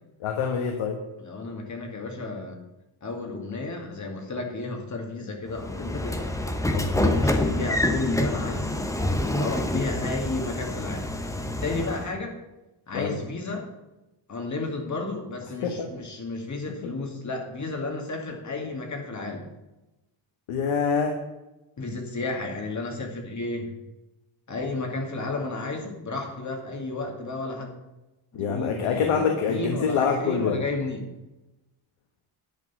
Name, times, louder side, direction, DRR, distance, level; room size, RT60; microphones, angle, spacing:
voice 1, 0.2-1.0 6.7-7.2 12.9-13.2 15.6-15.9 20.5-21.1 28.3-30.6, left 6 dB, 90° left, 3 dB, 1.5 m, -26 dB
voice 2, 1.2-2.6 3.0-6.2 6.9-8.8 9.3-11.1 11.6-12.4 12.9-13.7 14.3-19.4 21.8-23.7 24.5-27.7 28.3-31.0, left 3 dB, 35° left, 2 dB, 2.4 m, -32 dB
Train / Sliding door, 5.6-12.1, left 1 dB, 5° left, 0.8 m, -27 dB
11.0 x 5.3 x 8.3 m, 1.0 s
cardioid pair, 135°, 48 cm